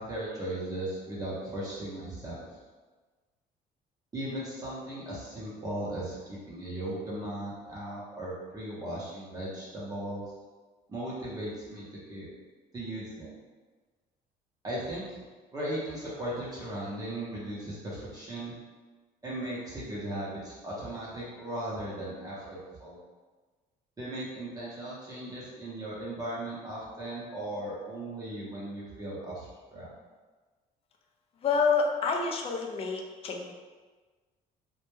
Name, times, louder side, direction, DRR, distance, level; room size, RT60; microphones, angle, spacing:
voice 1, 0.0-2.4 4.1-10.2 10.9-12.3 12.7-13.3 14.6-15.2 15.5-18.5 19.2-23.0 24.0-29.5 29.7-29.9, right 1 dB, 20° right, -7 dB, 0.7 m, -37 dB
voice 2, 31.4-33.5, left 5 dB, 35° left, 1 dB, 0.4 m, -28 dB
2.2 x 2.1 x 3.0 m, 1.3 s
cardioid pair, 110°, 17 cm